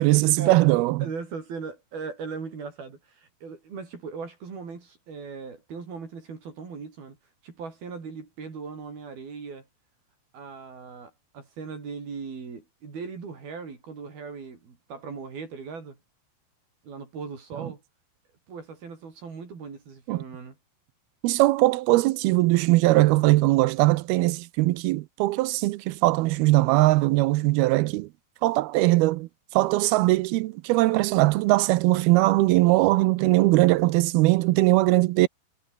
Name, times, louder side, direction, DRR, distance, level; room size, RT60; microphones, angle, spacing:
voice 1, 0.0-1.1 17.6-17.7 20.1-20.2 21.2-28.1 28.4-35.3, right 19 dB, 80° right, 2.3 m, -21 dB
voice 2, 1.0-7.2 7.4-9.7 10.3-16.0 16.8-17.8 18.5-20.5, right 5 dB, 60° right, 6.9 m, -39 dB
omnidirectional pair, 4.9 m